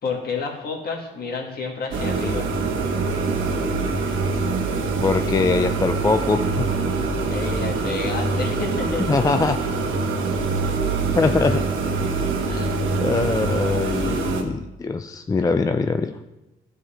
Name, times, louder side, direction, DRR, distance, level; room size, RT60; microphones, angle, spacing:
voice 1, 0.0-2.5 7.3-9.2 12.5-12.8, left 4 dB, 50° left, 0 dB, 1.9 m, -30 dB
sound 1, 1.9-14.4, right 3 dB, 85° right, 1.1 m, -24 dB
voice 2, 5.0-6.7 9.1-9.6 11.1-11.6 13.0-16.2, left 4 dB, 20° left, 8 dB, 0.4 m, -22 dB
12.0 x 4.8 x 4.4 m, 0.97 s
cardioid pair, 90°, 20 cm